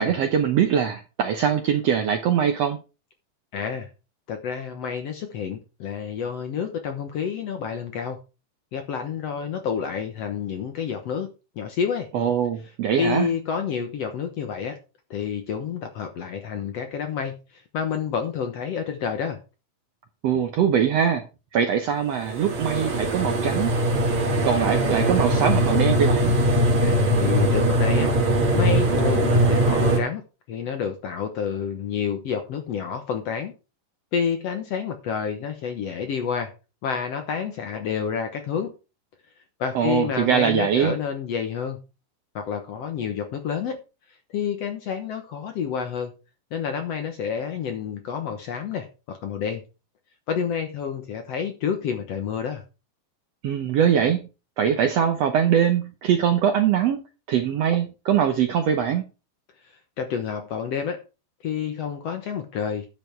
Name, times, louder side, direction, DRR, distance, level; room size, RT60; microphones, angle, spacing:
voice 1, 0.0-2.8 12.1-13.3 20.2-21.2 21.5-23.7 24.4-26.4 39.7-41.0 53.4-54.3 54.6-57.0 57.3-59.0, right 8 dB, 70° right, 1.5 m, -22 dB
voice 2, 3.5-3.9 4.3-8.2 8.7-11.3 11.6-12.1 13.0-14.8 15.1-19.4 26.8-28.1 28.5-30.2 30.5-33.5 34.1-36.5 36.8-38.7 39.6-41.8 42.3-43.8 44.3-46.1 46.5-49.6 50.3-52.6 60.0-61.0 61.4-62.9, left 7 dB, 65° left, 1.7 m, -29 dB
sound 1, 22.2-30.0, right 1 dB, 40° right, 2.8 m, -21 dB
10.5 x 7.0 x 4.5 m
omnidirectional pair, 4.0 m